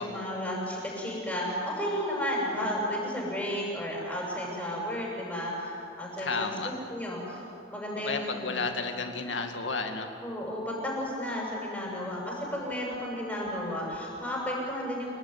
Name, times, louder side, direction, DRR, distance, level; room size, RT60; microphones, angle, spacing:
voice 1, 0.0-7.4 7.7-8.6 10.2-15.1, equal, 10° left, -4 dB, 7.6 m, -33 dB
voice 2, 6.2-6.7 8.0-10.1, left 4 dB, 80° left, 5 dB, 2.3 m, -32 dB
29.5 x 18.5 x 9.9 m, 2.7 s
head